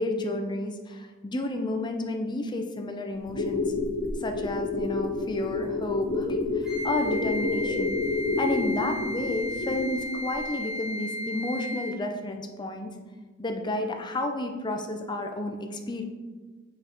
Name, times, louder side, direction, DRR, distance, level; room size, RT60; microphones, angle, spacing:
voice 1, 0.0-3.7 4.2-7.9 8.4-12.9 13.4-16.0, left 2 dB, 20° left, 4 dB, 0.6 m, -31 dB
sound 1, 3.2-10.1 10.3-10.4, left 3 dB, 70° left, 2.0 m, -29 dB
Wind instrument woodwind instrument, 6.6-12.0, left 1 dB, 5° right, 0.9 m, -34 dB
6.9 x 5.4 x 3.1 m, 1.4 s
head